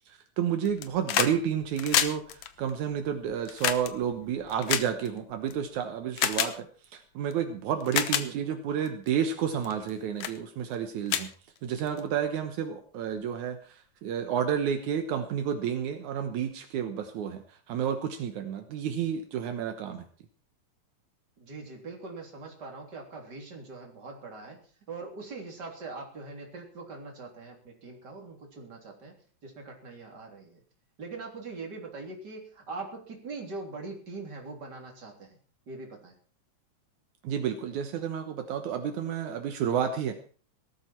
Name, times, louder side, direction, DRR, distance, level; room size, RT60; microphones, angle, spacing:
voice 1, 0.1-6.7 6.9-11.3 11.6-17.4 17.7-20.0 37.2-40.3, right 8 dB, 75° right, 7 dB, 2.5 m, -30 dB
sound 1, 0.6-1.4 1.6-5.5 6.2-6.5 7.3-7.4 7.8-8.3 8.9-9.1 9.6-9.9 10.2-10.4 10.7-10.8 11.1-12.0 13.2-13.3, left 11 dB, 75° left, 2.3 m, -29 dB
voice 2, 21.4-24.6 24.9-29.2 29.4-30.6 31.0-35.4 35.7-36.2, right 3 dB, 35° right, 1 dB, 3.8 m, -42 dB
18.0 x 13.5 x 4.5 m, 0.41 s
omnidirectional pair, 3.4 m